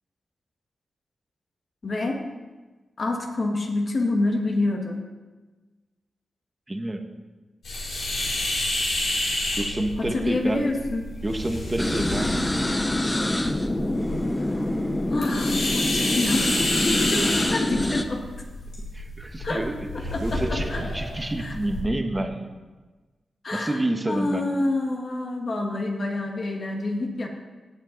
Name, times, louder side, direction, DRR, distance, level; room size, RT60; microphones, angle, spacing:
voice 1, 1.8-2.2 3.0-5.0 10.0-11.0 14.5-14.7 15.1-18.2 19.4-19.6 20.1-20.8 21.4-21.5 23.4-23.8 24.1-27.3, left 2 dB, 45° left, 2 dB, 1.7 m, -27 dB
voice 2, 6.7-7.0 9.5-10.6 11.2-12.4 18.9-22.5 23.5-24.4, right 1 dB, 15° right, 5 dB, 1.1 m, -28 dB
sound 1, 7.6-21.8, left 1 dB, 85° left, 4.5 m, -30 dB
sound 2, 11.8-18.0, left 1 dB, 15° left, 0.6 m, -25 dB
18.0 x 7.3 x 4.0 m, 1.3 s
wide cardioid pair, 105°, 0 cm